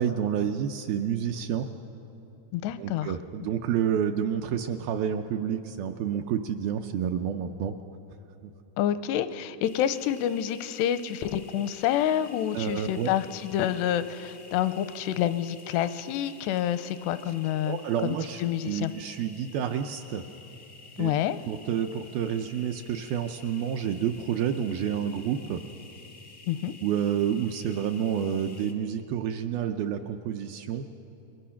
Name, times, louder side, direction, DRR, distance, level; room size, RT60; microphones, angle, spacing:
voice 1, 0.0-1.7 2.8-7.7 12.5-13.1 17.7-20.2 21.0-21.1 21.5-25.6 26.8-30.9, right 8 dB, 80° right, 6 dB, 2.2 m, -29 dB
voice 2, 2.5-3.1 8.8-17.8 18.4-18.9 21.0-21.4 26.5-26.7, left 11 dB, 85° left, 13 dB, 2.8 m, -28 dB
sound 1, 9.6-28.7, left 3 dB, 60° left, 0.8 m, -51 dB
27.0 x 22.0 x 5.8 m, 2.9 s
omnidirectional pair, 4.8 m